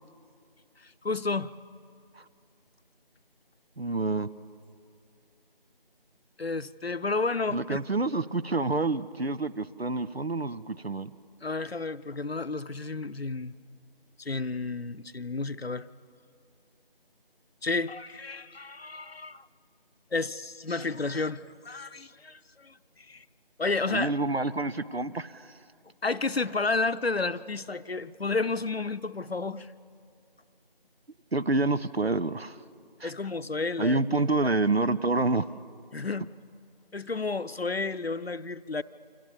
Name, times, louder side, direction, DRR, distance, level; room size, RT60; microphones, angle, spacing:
voice 1, 0.8-1.5 6.4-7.8 11.4-13.5 14.2-15.9 17.6-19.4 20.1-23.2 23.6-24.1 26.0-29.7 33.0-34.5 35.9-36.3 36.9-38.8, left 3 dB, 80° left, 13 dB, 0.9 m, -31 dB
voice 2, 3.8-4.3 7.5-11.1 23.9-25.5 31.3-32.6 33.0-33.1 33.8-35.5, right 2 dB, 90° right, 14 dB, 1.2 m, -28 dB
28.5 x 27.0 x 7.2 m, 2.4 s
figure-of-eight pair, 175°, 30 cm